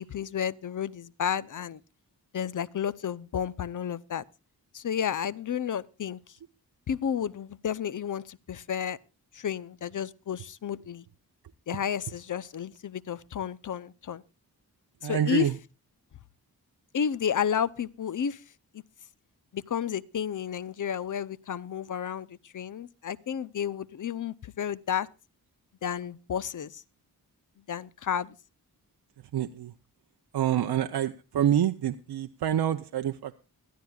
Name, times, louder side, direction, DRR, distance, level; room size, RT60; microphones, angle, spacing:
voice 1, 0.0-1.8 2.3-4.2 4.7-6.2 6.9-9.0 9.3-11.0 11.7-14.2 15.0-15.5 16.9-18.4 18.7-18.8 19.5-25.1 25.8-26.8 27.7-28.3, left 8 dB, 55° left, 0.6 m, -31 dB
voice 2, 15.0-15.6 29.3-29.7 30.3-33.4, right 10 dB, 90° right, 0.7 m, -27 dB
21.5 x 13.0 x 2.3 m
wide cardioid pair, 100°, 38 cm